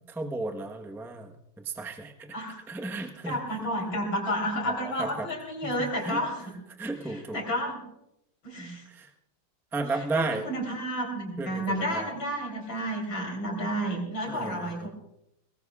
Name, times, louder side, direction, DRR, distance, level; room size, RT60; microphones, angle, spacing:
voice 1, 0.1-1.3 1.6-2.4 2.7-3.7 4.7-5.3 5.6-6.3 6.8-7.4 8.9-9.1 9.7-10.4 11.4-12.2 14.3-14.9, right 3 dB, ahead, 3 dB, 0.5 m, -34 dB
voice 2, 3.2-6.4 7.1-7.8 8.4-8.8 10.1-14.9, equal, 70° left, 0 dB, 4.3 m, -31 dB
23.0 x 19.0 x 2.4 m, 0.82 s
omnidirectional pair, 2.2 m